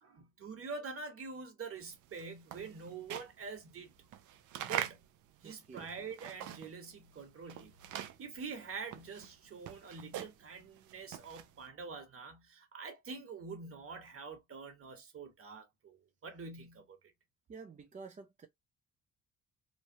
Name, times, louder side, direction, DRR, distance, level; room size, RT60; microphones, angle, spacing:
voice 1, 0.0-3.9 4.6-5.0 5.4-7.8 8.2-17.0, right 4 dB, 45° right, 1.2 m, -46 dB
sound 1, 1.9-6.9 7.2-11.6, right 11 dB, 75° right, 0.5 m, -43 dB
voice 2, 5.4-5.9 17.5-18.5, right 4 dB, 25° right, 0.5 m, -50 dB
3.1 x 2.2 x 2.7 m
cardioid pair, 90°, 30 cm